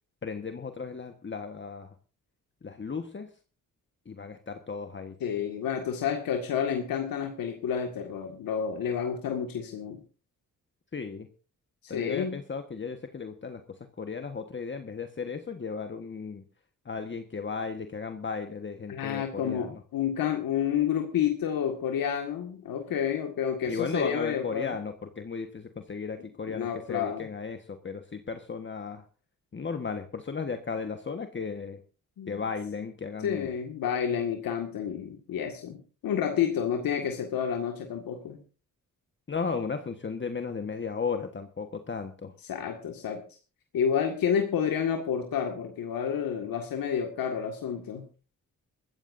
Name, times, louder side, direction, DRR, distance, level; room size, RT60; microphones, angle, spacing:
voice 1, 0.2-1.9 2.6-3.3 4.0-5.1 10.9-11.3 11.9-13.6 14.0-16.4 16.8-19.8 23.7-29.1 29.5-31.8 32.3-33.5 39.3-42.3, left 5 dB, 35° left, 6 dB, 1.4 m, -35 dB
voice 2, 5.2-10.0 11.8-12.4 18.9-24.8 26.5-27.3 32.2-32.4 33.2-38.4 42.5-43.2 43.7-48.0, left 8 dB, 85° left, 3 dB, 2.0 m, -30 dB
22.0 x 14.5 x 2.7 m, 0.35 s
cardioid pair, 80°, 34 cm